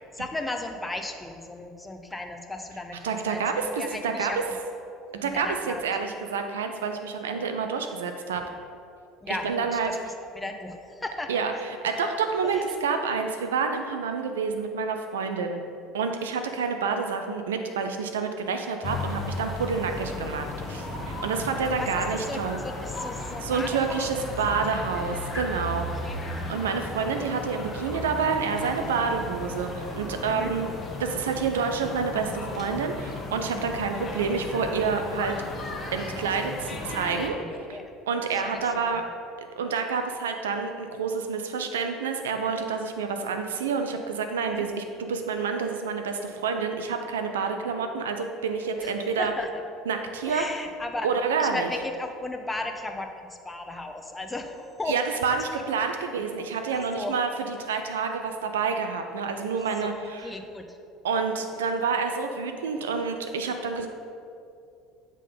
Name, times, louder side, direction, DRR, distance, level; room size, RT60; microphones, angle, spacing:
voice 1, 0.1-4.5 5.1-5.9 9.2-9.9 10.3-11.4 12.5-12.6 21.7-24.1 26.1-26.2 30.3-30.5 34.0-34.3 37.4-37.8 38.3-38.6 38.9-39.1 44.4-44.6 48.8-48.9 49.2-49.5 50.3-51.1 51.4-54.9 56.9-57.1 59.9-60.8, left 2 dB, 15° left, 5 dB, 0.7 m, -36 dB
voice 2, 3.0-4.4 5.2-8.4 9.4-10.0 11.3-15.6 15.9-22.6 23.4-25.9 26.5-30.7 31.0-35.4 35.9-37.4 37.7-37.8 38.1-39.0 39.6-49.3 49.9-50.4 51.0-51.7 54.9-60.4 61.0-63.9, right 5 dB, 75° right, 6 dB, 0.4 m, -28 dB
sound 1, 18.8-37.3, left 2 dB, 30° left, 1.0 m, -35 dB
7.4 x 3.7 x 5.1 m, 2.5 s
figure-of-eight pair, 65°, 0 cm